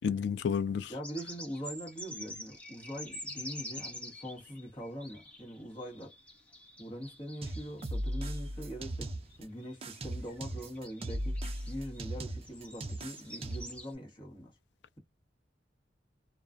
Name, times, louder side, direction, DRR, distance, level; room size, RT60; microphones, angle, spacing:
voice 1, 0.0-0.9, left 6 dB, 70° left, 0.3 m, -30 dB
voice 2, 0.9-6.1 6.8-9.1 9.4-11.4 11.7-14.5, equal, 30° left, 1.1 m, -42 dB
sound 1, 1.0-8.5 9.0-9.4 9.6-12.1 12.4-13.9, left 1 dB, 5° left, 0.9 m, -47 dB
sound 2, 7.4-9.4 9.8-13.8, right 1 dB, 35° right, 0.4 m, -37 dB
2.3 x 2.2 x 2.5 m
head